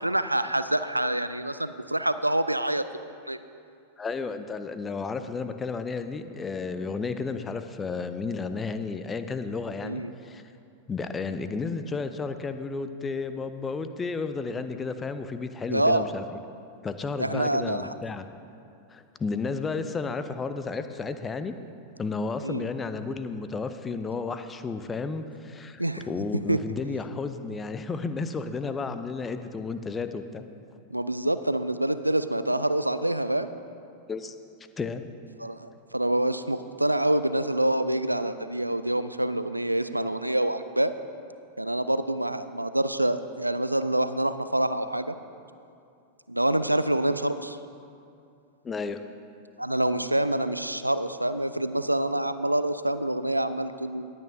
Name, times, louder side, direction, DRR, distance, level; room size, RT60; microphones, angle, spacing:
voice 1, 0.0-2.8 3.3-3.4 9.8-10.1 15.7-16.1 17.2-17.9 22.4-22.7 25.8-26.1 26.5-26.6 30.9-33.5 35.4-40.9 41.6-45.1 46.3-47.6 49.6-54.1, right 1 dB, 85° right, 12 dB, 0.3 m, -26 dB
voice 2, 4.0-10.4 10.9-16.2 16.8-18.3 18.9-21.6 22.0-30.4 34.1-34.3 34.8-35.0 48.6-49.0, left 4 dB, 15° left, 10 dB, 0.5 m, -32 dB
19.0 x 8.5 x 2.7 m, 2.5 s
figure-of-eight pair, 90°, 0 cm